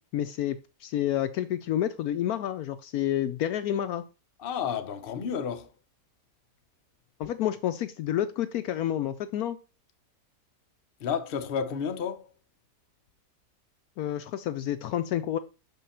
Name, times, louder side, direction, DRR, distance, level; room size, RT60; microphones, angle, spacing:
voice 1, 0.1-4.0 7.2-9.6 14.0-15.4, left 11 dB, 70° left, 1.0 m, -29 dB
voice 2, 4.4-5.7 11.0-12.3, left 7 dB, 50° left, 0.7 m, -31 dB
6.4 x 5.4 x 4.2 m
omnidirectional pair, 1.8 m